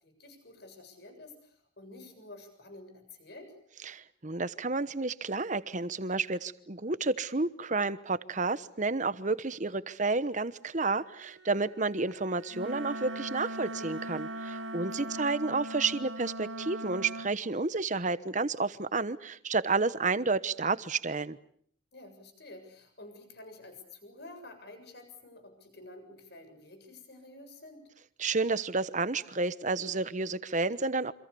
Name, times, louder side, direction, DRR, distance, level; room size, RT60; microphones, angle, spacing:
voice 1, 0.0-3.5 15.0-15.1 21.9-27.9, left 2 dB, 55° left, 7 dB, 7.5 m, -50 dB
voice 2, 3.8-21.4 28.2-31.1, right 3 dB, 40° right, 14 dB, 1.1 m, -31 dB
Bowed string instrument, 10.8-15.3, right 7 dB, 60° right, 3.0 m, -52 dB
Wind instrument woodwind instrument, 12.5-17.4, right 1 dB, 80° right, 1.6 m, -39 dB
28.5 x 26.5 x 6.9 m, 0.62 s
head